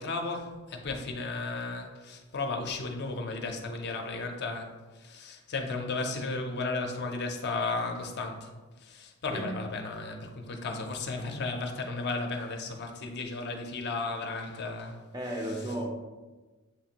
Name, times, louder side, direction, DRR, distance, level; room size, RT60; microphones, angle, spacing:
voice 1, 0.0-8.5 8.8-15.0, left 3 dB, 50° left, 3 dB, 0.5 m, -34 dB
voice 2, 9.3-9.7 15.1-15.9, right 1 dB, 15° right, 1 dB, 0.4 m, -34 dB
7.2 x 2.5 x 2.8 m, 1.2 s
head